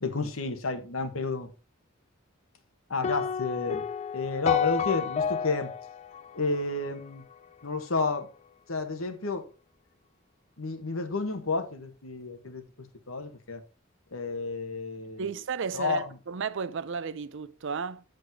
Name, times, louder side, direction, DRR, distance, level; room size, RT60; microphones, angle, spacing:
voice 1, 0.0-1.5 2.9-5.7 6.3-7.2 7.6-8.3 8.7-9.5 10.6-12.6 13.1-13.6 14.1-15.3 15.7-16.1, left 3 dB, 85° left, 1.4 m, -31 dB
sound 1, 3.0-7.3, left 7 dB, 35° left, 0.3 m, -31 dB
voice 2, 15.2-18.0, right 5 dB, 65° right, 0.5 m, -33 dB
7.8 x 5.3 x 5.1 m
head